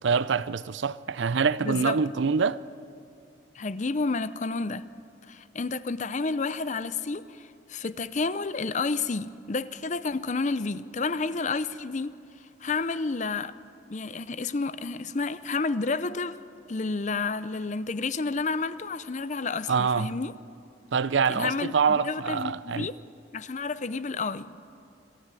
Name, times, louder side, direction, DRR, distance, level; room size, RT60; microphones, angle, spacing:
voice 1, 0.0-2.6 19.7-20.1 20.9-22.9, right 5 dB, 65° right, 0.5 m, -25 dB
voice 2, 1.6-2.0 3.5-4.8 5.3-12.1 12.6-13.5 13.9-20.3 21.3-23.0 23.3-24.6, left 4 dB, 35° left, 0.6 m, -30 dB
25.5 x 14.5 x 9.8 m
head